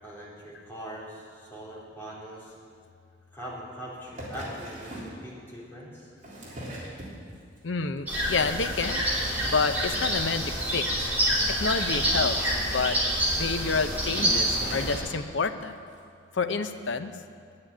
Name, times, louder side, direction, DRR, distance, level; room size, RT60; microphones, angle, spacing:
voice 1, 0.0-2.5 3.3-6.1, equal, 10° left, -8 dB, 3.5 m, -41 dB
sound 1, 4.1-5.2 6.0-7.6 8.0-8.4 8.7-8.8 9.1-9.2 9.4-9.5 9.8-9.9 10.5-10.6 11.5-12.9 13.6-13.7 14.0-15.1 15.9-16.0, right 1 dB, 40° right, 3.3 m, -41 dB
voice 2, 7.6-9.1 9.4-10.9 11.5-13.0 13.3-15.7 16.3-17.1, left 4 dB, 75° left, 9 dB, 0.7 m, -29 dB
sound 2, 8.1-15.0, equal, 10° right, 3.2 m, -27 dB
10.5 x 9.7 x 8.8 m, 2.2 s
head